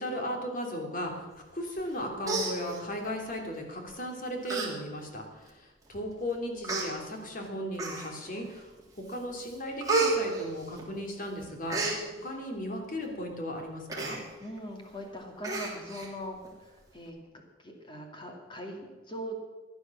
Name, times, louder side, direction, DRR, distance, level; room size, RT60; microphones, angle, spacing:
voice 1, 0.0-8.7 9.1-12.0 12.2-14.2, equal, 50° left, 2 dB, 3.0 m, -36 dB
Human voice, 1.8-1.9 2.2-3.1 3.9-4.0 4.4-4.7 5.1-5.2 6.0-6.1 6.6-6.9 7.7-8.3 8.8-9.1 9.4-11.1 11.4-12.0 13.9-14.2 14.6-14.7 14.9-15.1 15.4-16.1 16.4-16.5, right 3 dB, 20° right, 3.3 m, -31 dB
voice 2, 14.4-19.4, equal, 25° left, 2 dB, 2.6 m, -41 dB
15.5 x 10.5 x 7.2 m, 1.3 s
head